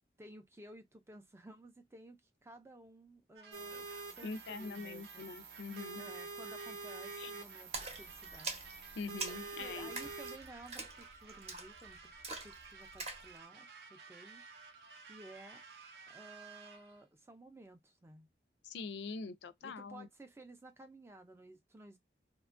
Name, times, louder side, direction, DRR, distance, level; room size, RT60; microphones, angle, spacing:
voice 1, 0.2-5.2 6.0-8.7 9.6-14.4 15.0-15.6 16.1-18.3 19.6-22.0, right 1 dB, 15° right, 0.3 m, -55 dB
sound 1, 3.4-17.0, right 5 dB, 70° right, 0.5 m, -55 dB
sound 2, 3.5-10.4, right 3 dB, 90° right, 0.9 m, -47 dB
voice 2, 4.2-6.1 7.2-7.3 9.0-10.0 18.6-20.1, left 4 dB, 80° left, 0.4 m, -44 dB
Splash splatter, 7.7-13.3, right 3 dB, 35° right, 0.7 m, -45 dB
2.7 x 2.3 x 2.4 m
head